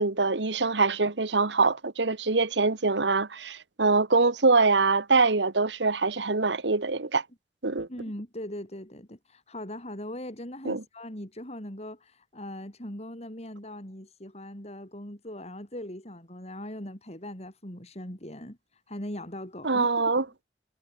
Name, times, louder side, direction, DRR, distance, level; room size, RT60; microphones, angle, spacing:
voice 1, 0.0-7.2 7.6-7.9 10.6-10.8 19.6-20.2, right 3 dB, 80° right, 1.5 m, -24 dB
voice 2, 7.9-20.2, left 1 dB, 35° left, 6.7 m, -40 dB
head